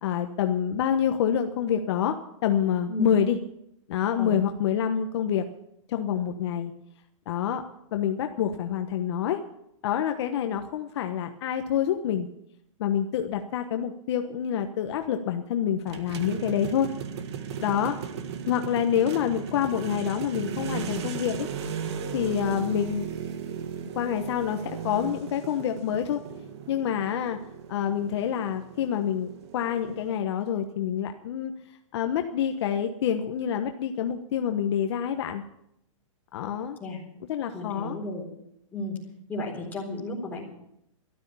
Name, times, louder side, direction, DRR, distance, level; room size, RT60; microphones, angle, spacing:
voice 1, 0.0-2.2 2.4-3.4 3.9-5.5 5.9-6.7 7.3-7.6 7.9-9.4 9.8-12.3 12.8-16.9 17.6-18.0 18.5-21.5 22.1-23.1 23.9-26.2 26.7-27.4 27.7-31.5 31.9-35.4 36.3-36.8 37.3-38.0, left 9 dB, 55° left, 6 dB, 1.1 m, -27 dB
sound 1, 15.9-30.2, right 7 dB, 55° right, 1.7 m, -36 dB
voice 2, 37.5-38.3 38.7-39.0 39.3-40.5, left 1 dB, 10° left, -2 dB, 4.1 m, -33 dB
14.0 x 12.5 x 7.0 m, 0.78 s
hypercardioid pair, 155°, 17 cm